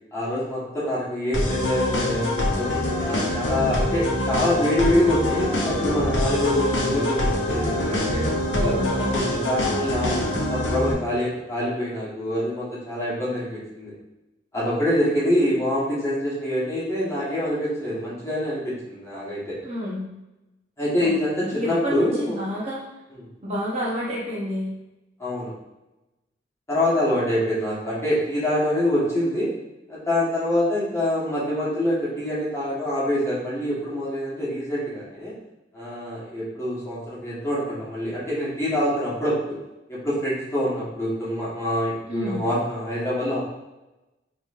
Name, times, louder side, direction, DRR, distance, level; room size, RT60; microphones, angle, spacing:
voice 1, 0.1-2.7 3.0-8.2 8.6-13.9 14.5-19.6 20.8-22.3 25.2-25.5 26.7-29.5 29.9-35.3 35.7-39.6 39.9-43.4, left 1 dB, 15° left, -9 dB, 1.4 m, -25 dB
sound 1, 1.3-10.9, left 1 dB, 85° left, 0.7 m, -24 dB
voice 2, 8.5-9.2 19.6-20.2 21.0-21.1 21.4-22.8 23.4-24.7 42.1-42.5, left 1 dB, 35° right, -6 dB, 0.9 m, -29 dB
4.0 x 3.0 x 2.5 m, 0.99 s
head